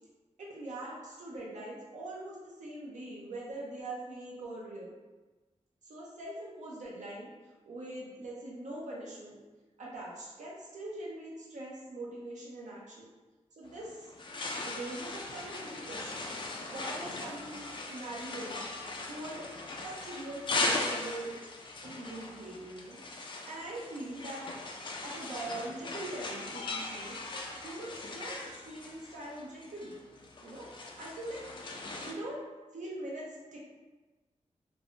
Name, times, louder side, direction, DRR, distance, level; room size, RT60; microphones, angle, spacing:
voice 1, 0.4-4.9 5.8-7.3 7.7-9.4 9.8-13.1 13.6-14.1 14.6-16.3 16.6-18.6 19.1-19.5 19.8-21.4 21.8-24.4 25.0-27.2 27.6-30.1 30.4-31.4 32.0-32.4 32.7-33.2 33.5-33.6, right 1 dB, 75° right, -4 dB, 0.6 m, -42 dB
sound 1, 13.6-32.1, left 2 dB, 40° left, 0.3 m, -39 dB
3.5 x 2.0 x 2.5 m, 1.2 s
wide cardioid pair, 130°, 13 cm